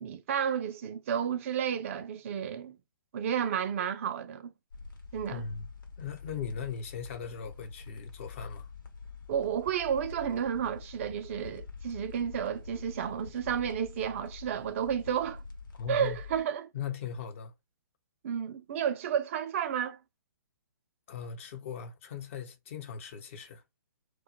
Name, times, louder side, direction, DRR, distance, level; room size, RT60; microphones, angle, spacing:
voice 1, 0.0-2.7 3.1-4.5 5.1-5.4 9.3-15.4 15.9-16.7 18.2-20.0, right 8 dB, 40° right, 0.4 m, -31 dB
sound 1, 4.7-16.4, left 4 dB, 70° left, 0.9 m, -46 dB
voice 2, 5.3-5.7 6.0-8.7 15.8-16.2 16.7-17.5 21.1-23.6, left 7 dB, 35° left, 0.6 m, -39 dB
2.2 x 2.0 x 2.8 m
figure-of-eight pair, 125°, 11 cm